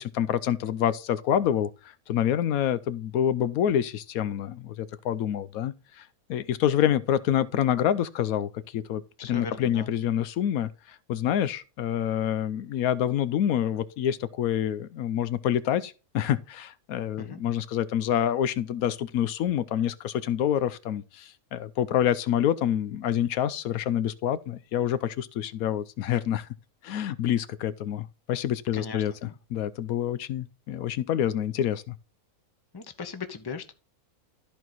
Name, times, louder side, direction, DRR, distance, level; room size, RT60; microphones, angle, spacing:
voice 1, 0.0-26.5 26.8-32.0, left 10 dB, 80° left, 1.1 m, -27 dB
voice 2, 9.2-9.9 17.2-17.4 28.7-29.0 32.7-33.7, left 5 dB, 20° left, 0.8 m, -38 dB
13.5 x 4.6 x 4.0 m
omnidirectional pair, 1.5 m